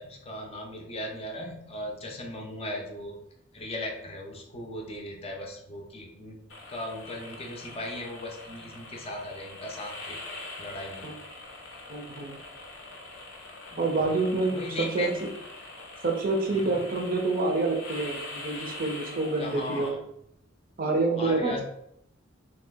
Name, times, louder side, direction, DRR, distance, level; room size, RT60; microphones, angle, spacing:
voice 1, 0.0-3.2 3.5-6.4 6.7-10.2 10.6-11.1 13.7-14.1 14.5-15.3 16.5-17.0 19.4-20.0 21.2-21.6, left 1 dB, 30° left, 1 dB, 0.5 m, -37 dB
sound 1, 6.5-19.9, left 2 dB, 80° left, 0.6 m, -43 dB
voice 2, 11.9-12.4 13.8-14.5 14.9-15.1 16.0-20.0 20.8-21.5, right 3 dB, 45° right, 2 dB, 0.5 m, -27 dB
2.7 x 2.2 x 3.5 m, 0.74 s
head